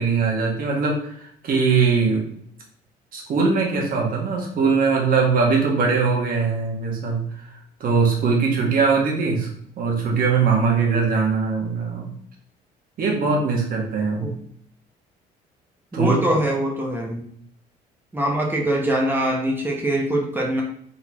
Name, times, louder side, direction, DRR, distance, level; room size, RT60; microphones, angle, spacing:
voice 1, 0.0-2.3 3.1-7.4 7.8-12.1 13.0-14.4 15.9-16.1, right 5 dB, 55° right, -1 dB, 1.5 m, -21 dB
voice 2, 15.9-17.2 18.1-20.6, right 1 dB, 10° right, -2 dB, 1.1 m, -23 dB
4.1 x 3.9 x 3.0 m, 0.65 s
cardioid pair, 110°, 17 cm